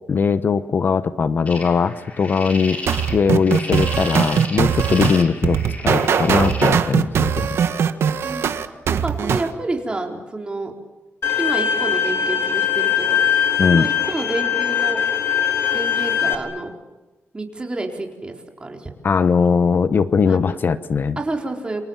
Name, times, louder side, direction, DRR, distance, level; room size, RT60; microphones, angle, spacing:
voice 1, 0.1-2.8 3.1-5.6 5.8-7.5 13.6-13.9 19.0-21.2, left 5 dB, 50° left, 12 dB, 1.0 m, -19 dB
sound 1, 1.5-6.7, left 2 dB, 35° left, 6.4 m, -34 dB
sound 2, 2.9-9.5, right 7 dB, 70° right, 1.6 m, -20 dB
voice 2, 8.2-8.6 9.0-10.7 11.4-13.2 13.7-15.1 15.7-16.7 17.3-18.3 18.6-18.9 20.3-20.6 21.2-21.8, right 2 dB, 20° right, 2 dB, 4.3 m, -28 dB
Bowed string instrument, 11.2-16.4, left 9 dB, 65° left, 3.4 m, -21 dB
29.5 x 25.5 x 7.4 m, 1.1 s
wide cardioid pair, 115°, 4 cm